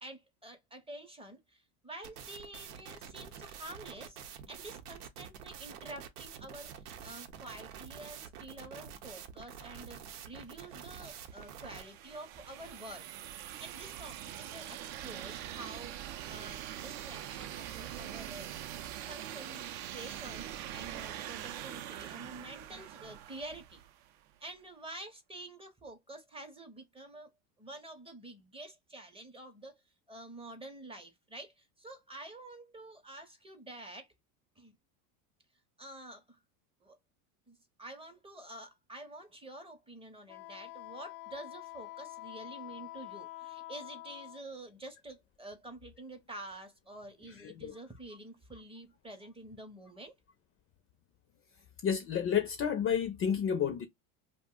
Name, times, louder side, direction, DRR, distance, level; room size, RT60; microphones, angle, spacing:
voice 1, 0.0-4.2 4.5-13.1 13.6-16.0 16.3-18.5 19.1-23.8 24.4-27.3 27.6-29.8 30.1-34.1 34.6-34.7 35.8-36.4 36.8-37.0 37.5-50.1, right 1 dB, 10° right, 0.6 m, -48 dB
sound 1, 2.0-11.8, right 8 dB, 90° right, 0.7 m, -47 dB
sound 2, 10.5-24.2, right 12 dB, 55° right, 0.5 m, -43 dB
Wind instrument woodwind instrument, 40.3-44.4, left 17 dB, 80° left, 0.8 m, -46 dB
voice 2, 47.3-47.7 51.8-53.9, left 8 dB, 30° left, 0.5 m, -31 dB
2.5 x 2.1 x 3.6 m
supercardioid pair, 110°, 45 cm